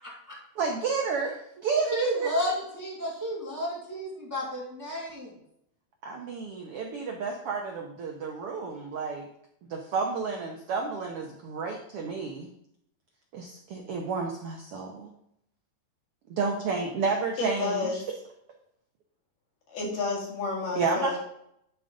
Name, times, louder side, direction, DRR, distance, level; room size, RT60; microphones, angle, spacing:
voice 1, 0.0-0.4 1.9-5.3, equal, 5° right, -4 dB, 1.5 m, -32 dB
voice 2, 0.6-2.3 6.0-9.3 9.7-12.5 13.3-15.1 16.3-18.0 20.8-21.2, right 4 dB, 75° right, 1 dB, 1.3 m, -31 dB
voice 3, 17.4-18.0 19.7-21.2, left 3 dB, 85° left, -2 dB, 3.8 m, -30 dB
11.0 x 3.8 x 5.1 m, 0.74 s
omnidirectional pair, 3.7 m